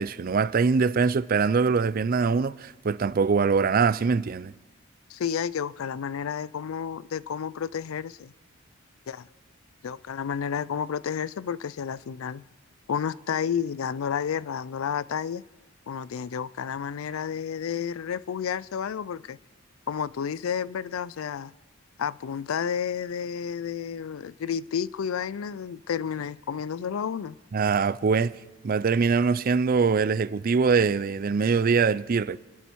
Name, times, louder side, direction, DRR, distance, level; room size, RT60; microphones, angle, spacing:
voice 1, 0.0-4.5 27.5-28.4 28.6-32.4, right 5 dB, 45° right, 0.4 m, -23 dB
voice 2, 5.1-8.3 9.1-9.3 9.8-12.4 12.9-15.4 15.9-19.4 19.9-21.5 22.0-27.4, left 7 dB, 80° left, 0.4 m, -31 dB
28.5 x 10.5 x 4.6 m
head